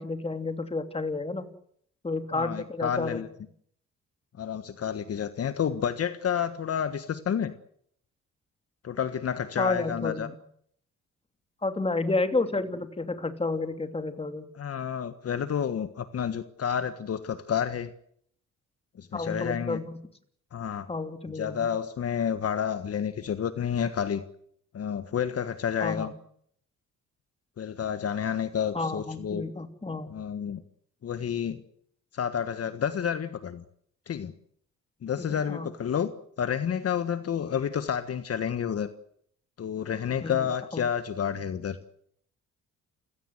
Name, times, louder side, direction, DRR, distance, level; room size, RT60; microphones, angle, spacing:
voice 1, 0.0-1.5 2.0-3.2 9.6-10.3 11.6-14.5 19.1-19.9 20.9-21.7 25.8-26.1 28.7-30.1 35.2-35.7 40.2-40.8, left 3 dB, 20° left, 8 dB, 2.9 m, -31 dB
voice 2, 2.3-3.3 4.4-7.5 8.8-10.3 14.6-17.9 19.0-19.8 20.5-20.9 21.3-24.2 24.7-26.1 27.6-29.5 30.1-30.6 31.0-31.6 32.1-33.6 34.1-34.3 35.0-36.1 36.4-38.9 39.6-41.8, left 8 dB, 50° left, 11 dB, 1.5 m, -30 dB
29.0 x 17.0 x 7.9 m, 0.66 s
cardioid pair, 90°, 30 cm